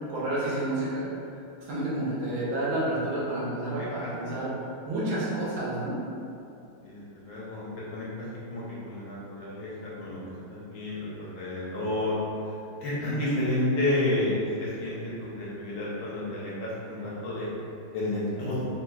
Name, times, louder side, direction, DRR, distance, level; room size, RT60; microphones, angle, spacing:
voice 1, 0.1-1.1 1.7-4.5 4.9-5.9 13.0-13.4, right 1 dB, 70° right, -8 dB, 1.7 m, -30 dB
voice 2, 3.7-4.1 6.8-7.7 7.9-8.1 8.5-10.2 10.5-12.2 12.4-12.5 12.8-17.5 17.9-18.7, left 1 dB, 70° left, -7 dB, 1.5 m, -31 dB
3.8 x 2.9 x 2.3 m, 2.7 s
omnidirectional pair, 2.3 m